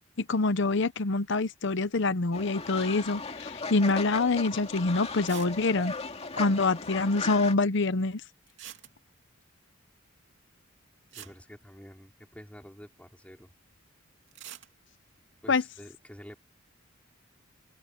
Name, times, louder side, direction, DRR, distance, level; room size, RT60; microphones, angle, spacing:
voice 1, 0.3-5.9 6.4-8.2 15.5-15.6, left 3 dB, 60° left, 0.8 m, -26 dB
Fowl, 2.3-7.5, left 3 dB, 30° left, 2.3 m, -37 dB
sound 1, 3.9-4.2 4.6-4.7 5.3-5.6 5.9-6.0 6.1-6.2 8.5-9.3 10.7-10.8 11.1-12.3 14.3-14.7, right 11 dB, 60° right, 2.7 m, -46 dB
voice 2, 11.1-13.5 15.4-16.4, equal, 5° left, 3.9 m, -48 dB
head